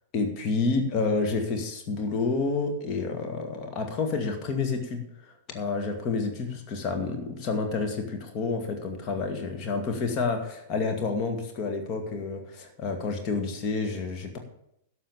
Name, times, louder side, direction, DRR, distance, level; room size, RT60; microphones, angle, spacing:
voice 1, 0.1-5.0 5.5-14.4, left 4 dB, 35° left, 5 dB, 2.3 m, -29 dB
12.0 x 7.2 x 7.2 m, 0.77 s
figure-of-eight pair, 100°, 0 cm